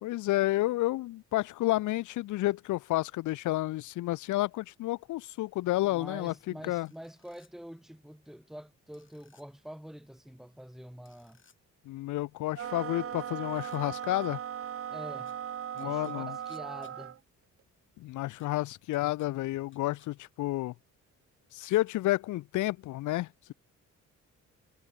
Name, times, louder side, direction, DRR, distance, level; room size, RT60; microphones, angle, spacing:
voice 1, 0.0-6.3 6.6-6.9 11.9-14.4 15.8-16.4 18.0-20.7 21.5-23.5, left 17 dB, 85° left, 0.6 m, -30 dB
voice 2, 5.8-11.4 14.9-15.3 15.7-17.2, equal, ahead, 2.9 m, -46 dB
sound 1, 6.9-7.5 8.9-9.4 11.1-11.6 13.2-14.3 15.3-15.4 15.8-16.9 18.4-18.5 18.9-19.3 19.7-20.1 21.6-22.0, left 6 dB, 40° left, 6.6 m, -63 dB
sound 2, 12.5-17.2, right 9 dB, 50° right, 1.1 m, -38 dB
cardioid pair, 115°, 29 cm